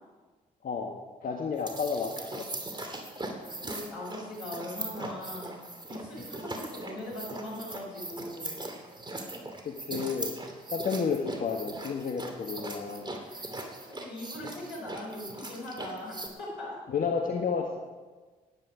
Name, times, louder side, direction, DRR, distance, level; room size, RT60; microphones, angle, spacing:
voice 1, 0.6-1.0 1.2-2.4 3.4-3.5 9.6-10.4 10.7-13.1 16.9-17.8, left 5 dB, 50° left, 1 dB, 1.5 m, -31 dB
sound 1, 1.5-16.3, right 2 dB, 25° right, 2.8 m, -40 dB
voice 2, 3.5-5.5 5.9-8.7 13.2-13.4 13.9-16.8, left 1 dB, 75° left, -3 dB, 5.3 m, -40 dB
16.0 x 10.5 x 5.0 m, 1.3 s
hypercardioid pair, 40°, 19 cm